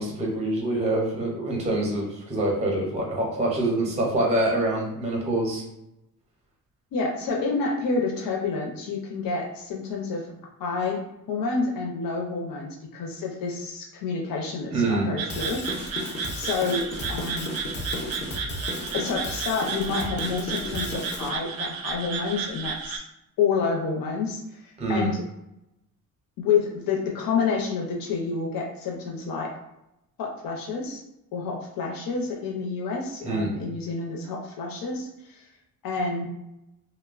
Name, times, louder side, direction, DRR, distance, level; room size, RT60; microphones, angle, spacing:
voice 1, 0.0-5.6 14.7-15.1 24.8-25.1 33.2-33.5, right 1 dB, 20° right, -1 dB, 0.5 m, -25 dB
voice 2, 6.9-10.3 10.6-11.0 11.3-17.5 18.9-23.0 23.4-25.2 26.4-29.5 30.2-31.0 31.3-35.4 35.8-36.2, left 4 dB, 75° left, -1 dB, 0.6 m, -29 dB
sound 1, 15.2-23.0, right 6 dB, 90° right, 0.5 m, -33 dB
Drum kit / Drum, 15.3-21.3, left 2 dB, 35° left, 0.4 m, -34 dB
3.0 x 2.0 x 2.3 m, 0.87 s
wide cardioid pair, 165°, 34 cm